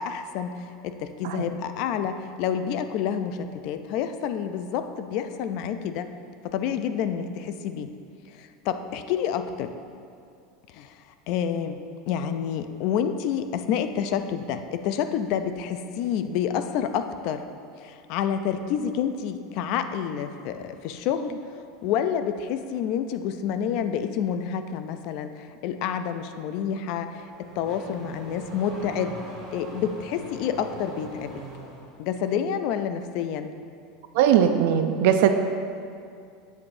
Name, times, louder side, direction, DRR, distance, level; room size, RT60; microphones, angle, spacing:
voice 1, 0.0-6.1 6.4-7.9 8.3-9.7 10.7-11.0 11.3-11.8 12.1-17.4 17.8-21.4 21.8-29.2 29.5-31.4 32.0-33.6, left 8 dB, 45° left, 9 dB, 0.4 m, -28 dB
Car / Accelerating revving vroom, 26.9-31.9, right 2 dB, 25° right, 1.4 m, -41 dB
voice 2, 34.1-35.3, right 9 dB, 60° right, 8 dB, 0.4 m, -20 dB
8.5 x 8.0 x 2.6 m, 2.4 s
supercardioid pair, 175°, 0 cm